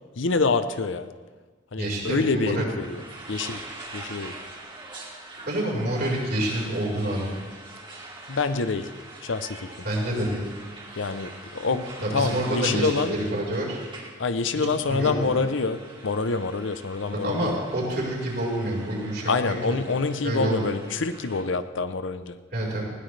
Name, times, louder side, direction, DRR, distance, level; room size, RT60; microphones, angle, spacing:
voice 1, 0.2-1.1 1.7-3.0 3.3-3.6 3.9-4.3 8.3-8.9 9.2-9.7 11.0-13.1 14.2-17.6 19.3-22.4, left 4 dB, 80° left, 11 dB, 0.7 m, -26 dB
voice 2, 1.8-2.6 5.3-7.3 9.8-10.4 12.0-13.8 14.8-15.4 17.2-19.5 20.2-20.7 22.5-22.8, right 1 dB, 55° right, -4 dB, 4.7 m, -27 dB
sound 1, 2.8-21.4, right 2 dB, 25° right, 2.4 m, -44 dB
20.0 x 17.0 x 3.3 m, 1.4 s
head